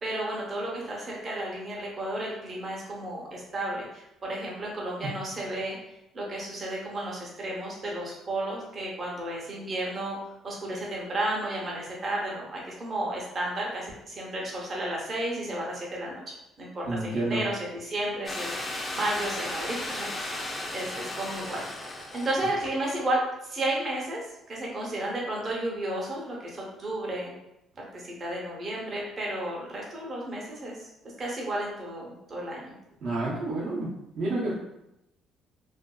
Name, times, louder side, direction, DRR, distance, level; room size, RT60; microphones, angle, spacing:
voice 1, 0.0-5.8 6.1-10.2 10.4-20.4 20.7-21.6 22.1-27.3 27.8-30.9 31.2-32.7, right 1 dB, 35° right, -3 dB, 0.7 m, -33 dB
voice 2, 16.8-17.4 33.0-33.9 34.2-34.5, right 2 dB, 60° right, -6 dB, 0.7 m, -29 dB
sound 1, 18.3-22.3 22.6-22.7, left 1 dB, 25° left, 0.4 m, -35 dB
2.5 x 2.3 x 2.2 m, 0.88 s
cardioid pair, 110°, 0 cm